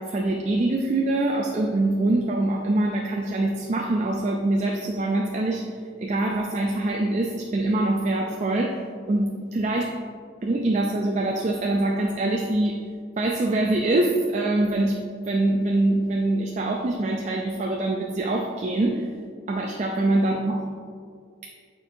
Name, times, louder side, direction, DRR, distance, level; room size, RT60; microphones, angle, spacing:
voice 1, 0.0-5.6 6.0-8.8 9.1-9.9 10.4-12.8 13.2-15.0 15.2-19.1 19.5-20.6, right 2 dB, 35° right, 1 dB, 0.4 m, -24 dB
8.8 x 4.4 x 2.6 m, 2.1 s
head